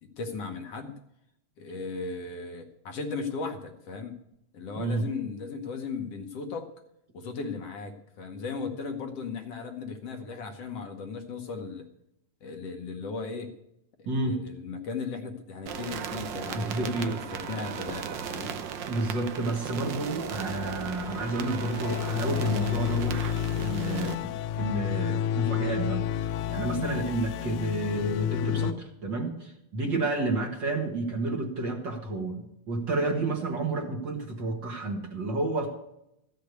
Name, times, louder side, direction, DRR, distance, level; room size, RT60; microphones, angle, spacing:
voice 1, 0.2-1.0 1.6-4.2 4.5-6.7 7.1-11.9 12.4-13.5 14.0-18.5, left 4 dB, 65° left, 5 dB, 2.0 m, -36 dB
voice 2, 14.1-14.4 16.5-17.2 18.9-23.2 23.5-35.7, right 2 dB, 45° right, 2 dB, 2.0 m, -30 dB
sound 1, 15.7-24.2, right 7 dB, 80° right, 1.0 m, -37 dB
sound 2, 20.5-28.7, left 9 dB, 90° left, 2.1 m, -30 dB
14.5 x 6.7 x 9.4 m, 0.81 s
omnidirectional pair, 3.3 m